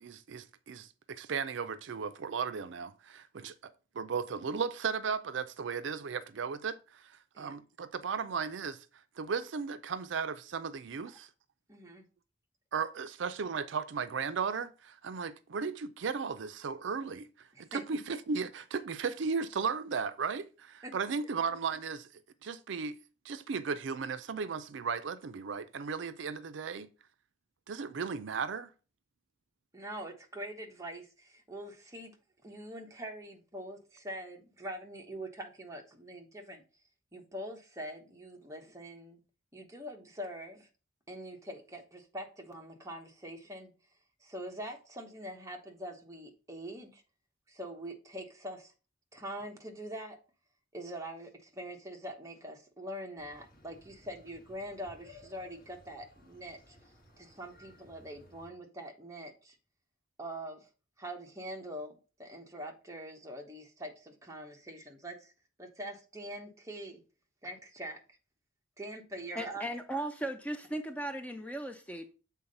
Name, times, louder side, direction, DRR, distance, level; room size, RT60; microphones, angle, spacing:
voice 1, 0.0-8.9 9.2-11.3 12.7-22.1 22.4-23.0 23.2-26.9 27.7-28.7, right 5 dB, 65° right, 0.4 m, -36 dB
voice 2, 11.7-12.1 17.5-17.8 20.8-20.9 29.7-32.2 32.4-36.6 37.1-39.2 39.5-40.7 41.1-43.7 44.2-47.0 47.5-48.7 49.1-50.2 50.7-56.8 57.2-59.6 60.2-60.7 61.0-65.3 65.6-67.0 67.4-68.0 68.8-69.7, right 1 dB, 15° right, 1.1 m, -44 dB
sound 1, 53.2-58.5, left 1 dB, 45° left, 2.4 m, -59 dB
voice 3, 69.3-72.2, right 1 dB, 5° left, 0.5 m, -37 dB
7.3 x 3.9 x 5.3 m
head